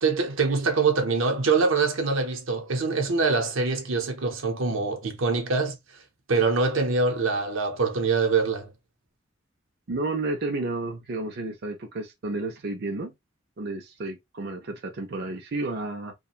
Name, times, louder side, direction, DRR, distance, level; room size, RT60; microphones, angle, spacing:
voice 1, 0.0-5.8 6.3-8.7, right 4 dB, 85° right, 0.8 m, -24 dB
voice 2, 9.9-13.1 13.6-16.1, right 2 dB, 55° right, 0.5 m, -31 dB
2.9 x 2.3 x 2.4 m
head